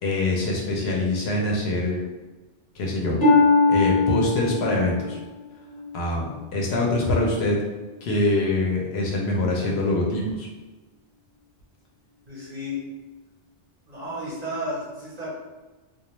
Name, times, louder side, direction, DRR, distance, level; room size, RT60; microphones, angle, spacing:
voice 1, 0.0-2.0 2.7-3.2 3.7-5.2 5.9-6.3 6.5-7.6 8.0-10.5, left 2 dB, 65° left, -2 dB, 0.8 m, -24 dB
Harp, 3.2-6.9 7.5-7.9 8.5-8.6, left 3 dB, 25° left, 0.6 m, -22 dB
voice 2, 12.3-12.8 13.9-15.4, left 1 dB, 45° right, -6 dB, 0.7 m, -32 dB
2.2 x 2.1 x 2.9 m, 1.2 s
omnidirectional pair, 1.2 m